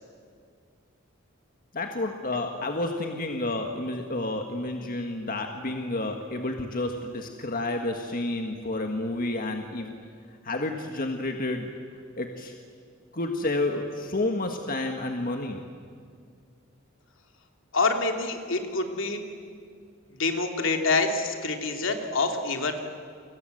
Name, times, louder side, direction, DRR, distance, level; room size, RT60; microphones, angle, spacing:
voice 1, 1.7-10.0 10.3-12.5 13.1-15.6, left 2 dB, 45° left, 4 dB, 1.8 m, -30 dB
voice 2, 17.7-19.2 20.2-22.8, left 3 dB, 70° left, 4 dB, 3.0 m, -26 dB
30.0 x 25.0 x 8.0 m, 2.2 s
head